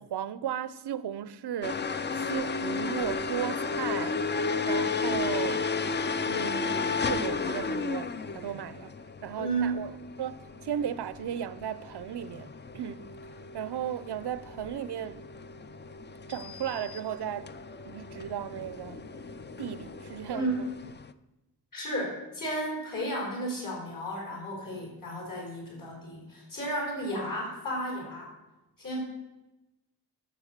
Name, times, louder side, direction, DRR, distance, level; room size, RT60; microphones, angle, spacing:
voice 1, 0.0-5.7 6.2-8.9 9.2-10.3 10.6-13.1 13.5-15.2 16.3-17.5 17.8-19.0 19.6-20.7, right 9 dB, 85° right, 0.7 m, -35 dB
sound 1, 1.6-21.1, left 4 dB, 30° left, 0.4 m, -34 dB
voice 2, 9.4-9.7 20.3-20.6 21.7-28.3 28.8-29.0, right 1 dB, 55° left, 4.5 m, -33 dB
11.5 x 7.3 x 6.6 m
wide cardioid pair, 175°, 39 cm